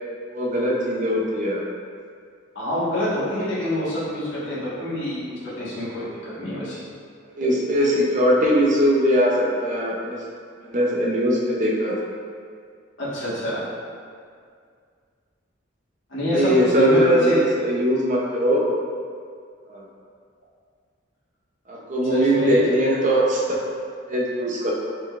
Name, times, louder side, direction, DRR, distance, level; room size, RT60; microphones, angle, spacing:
voice 1, 0.3-1.6 7.4-10.2 10.7-12.0 16.3-18.7 19.7-19.8 21.7-23.6 24.1-24.7, equal, 40° right, -3 dB, 0.6 m, -20 dB
voice 2, 2.5-6.1 6.4-6.8 13.0-13.6 16.1-17.5 22.1-22.7, left 1 dB, 65° left, -10 dB, 1.4 m, -26 dB
4.8 x 3.8 x 2.5 m, 2.1 s
head